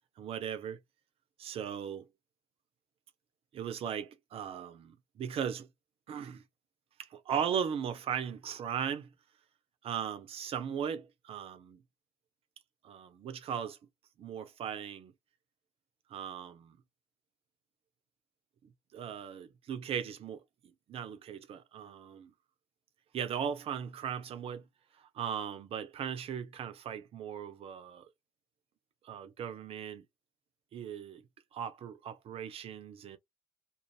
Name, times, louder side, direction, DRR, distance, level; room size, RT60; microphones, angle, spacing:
voice 1, 0.2-0.8 1.4-2.1 3.5-5.7 6.1-6.4 7.0-9.1 9.8-11.8 12.8-13.8 14.2-15.1 16.1-16.8 18.9-20.4 20.9-22.3 23.1-24.6 25.0-28.1 29.0-30.1 30.7-31.2 31.5-33.2, right 8 dB, 45° right, 0.7 m, -38 dB
2.5 x 2.1 x 3.0 m
figure-of-eight pair, 55°, 13 cm